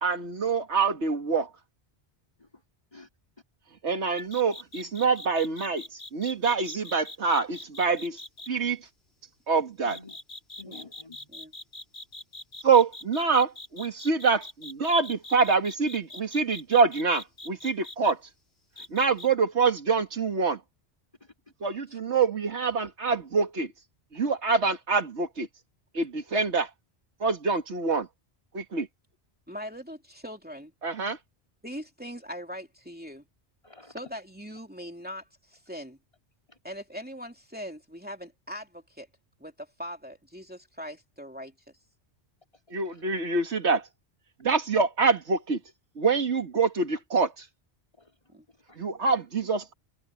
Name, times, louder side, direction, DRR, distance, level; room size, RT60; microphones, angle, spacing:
voice 1, 0.0-1.5 3.8-5.9 6.1-8.2 8.5-8.8 9.5-10.0 12.6-18.2 18.9-20.6 21.6-23.7 24.1-25.5 25.9-26.7 27.2-28.1 28.5-28.9 30.8-31.2 42.7-43.8 44.4-45.6 46.0-47.5 48.8-49.7, right 4 dB, 85° right, 2.1 m, -25 dB
sound 1, 4.2-8.5 9.9-18.1 18.8-19.3, left 2 dB, 65° left, 3.6 m, -43 dB
voice 2, 9.8-10.2 10.6-11.3 21.2-21.3 24.1-24.2 33.6-34.0 36.5-36.6 42.5-43.0 48.0-48.8, left 2 dB, 30° left, 3.3 m, -51 dB
voice 3, 29.5-30.7 31.6-33.2 33.9-36.0 36.6-39.1 39.4-41.5 48.3-48.4, equal, 10° right, 2.8 m, -41 dB
omnidirectional pair, 1.1 m